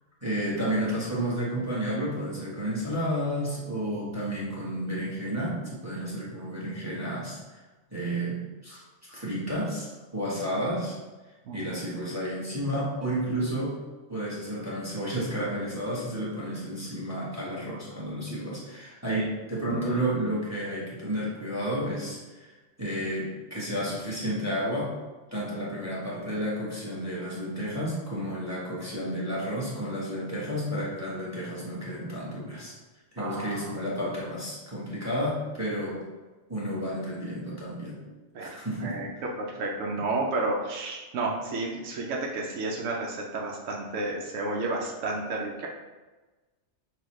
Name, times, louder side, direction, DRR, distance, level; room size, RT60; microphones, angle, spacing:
voice 1, 0.2-7.6 7.9-11.0 11.5-13.8 14.1-22.5 22.8-24.9 25.3-32.7 33.1-36.0 36.5-38.0 38.4-39.0, equal, 15° right, -6 dB, 1.0 m, -31 dB
voice 2, 33.2-33.6 38.3-38.5 38.8-39.1 39.4-45.7, right 2 dB, 80° right, -1 dB, 0.9 m, -31 dB
5.9 x 2.3 x 3.0 m, 1.2 s
omnidirectional pair, 1.3 m